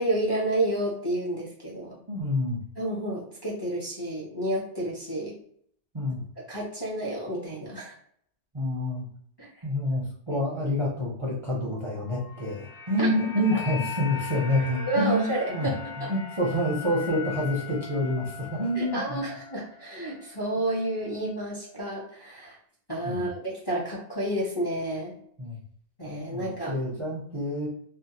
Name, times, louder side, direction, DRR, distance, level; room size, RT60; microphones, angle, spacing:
voice 1, 0.0-1.9 2.8-5.4 6.5-7.9 9.4-9.5 10.3-10.4 13.0-13.1 14.9-15.7 16.0-16.1 18.8-22.6 22.9-25.2 26.0-26.8, right 1 dB, 30° left, -5 dB, 0.5 m, -30 dB
voice 2, 2.1-2.6 5.9-6.2 8.5-9.1 9.6-15.7 16.1-19.2 23.0-23.3 25.4-25.6 26.3-27.7, left 1 dB, 35° right, -5 dB, 0.5 m, -28 dB
sound 1, 12.1-20.4 20.7-20.9, left 6 dB, 85° left, 1.1 m, -40 dB
2.7 x 2.1 x 2.7 m, 0.64 s
omnidirectional pair, 1.2 m